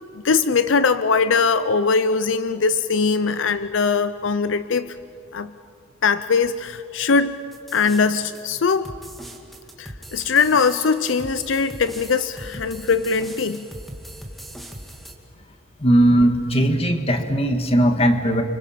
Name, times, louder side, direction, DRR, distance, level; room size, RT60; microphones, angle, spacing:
voice 1, 0.1-5.0 5.3-5.5 6.0-7.3 7.7-8.9 9.8-13.7, left 5 dB, 70° left, 13 dB, 0.6 m, -21 dB
sound 1, 7.5-15.1, right 1 dB, ahead, 2.1 m, -39 dB
voice 2, 15.8-18.4, right 1 dB, 30° left, 6 dB, 1.7 m, -18 dB
29.5 x 25.5 x 5.8 m, 2.6 s
head